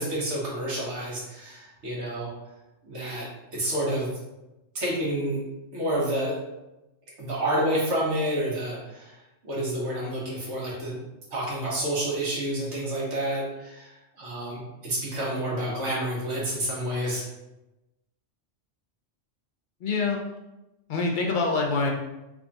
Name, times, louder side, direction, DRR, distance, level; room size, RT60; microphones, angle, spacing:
voice 1, 0.0-2.3 2.8-3.3 3.5-4.1 4.7-5.4 5.7-6.3 7.2-9.1 9.5-10.9 11.3-13.9 14.2-17.2, right 1 dB, 70° right, -5 dB, 1.4 m, -29 dB
voice 2, 19.8-20.2 20.9-21.9, left 3 dB, 55° left, 0 dB, 0.6 m, -25 dB
3.5 x 2.3 x 3.9 m, 0.98 s
omnidirectional pair, 1.2 m